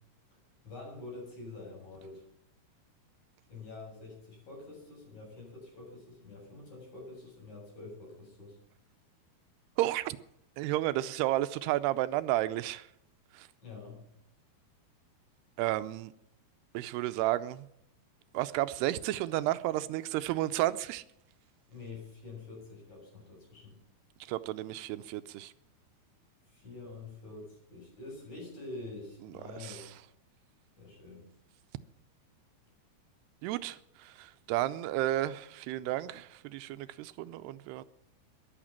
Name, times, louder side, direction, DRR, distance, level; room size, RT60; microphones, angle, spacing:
voice 1, 0.6-2.3 3.5-8.6 13.6-14.0 21.7-23.8 26.5-30.0 30.8-31.4, left 3 dB, 45° left, 8.9 m, -46 dB
voice 2, 9.8-10.2 10.6-12.9 13.3-13.5 15.6-16.1 16.7-17.7 18.3-21.0 24.3-25.5 29.4-29.8 33.4-37.8, right 15 dB, 85° right, 2.8 m, -32 dB
14.0 x 11.5 x 7.4 m
omnidirectional pair, 4.6 m